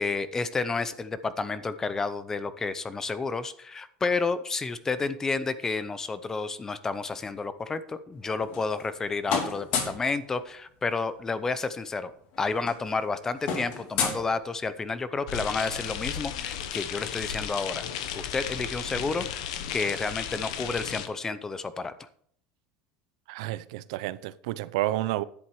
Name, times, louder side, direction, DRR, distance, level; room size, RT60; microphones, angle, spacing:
voice 1, 0.0-12.1 12.4-17.8 18.1-22.1, left 4 dB, 15° left, 0.7 m, -30 dB
sound 1, 8.2-9.0 9.3-10.1 11.5-11.6 11.8-12.0 12.3-14.9, left 5 dB, 55° left, 2.9 m, -32 dB
sound 2, 15.3-21.1, left 9 dB, 90° left, 1.2 m, -34 dB
voice 2, 23.3-25.2, right 16 dB, 80° right, 0.6 m, -30 dB
10.5 x 7.9 x 4.8 m
cardioid pair, 155°, 3 cm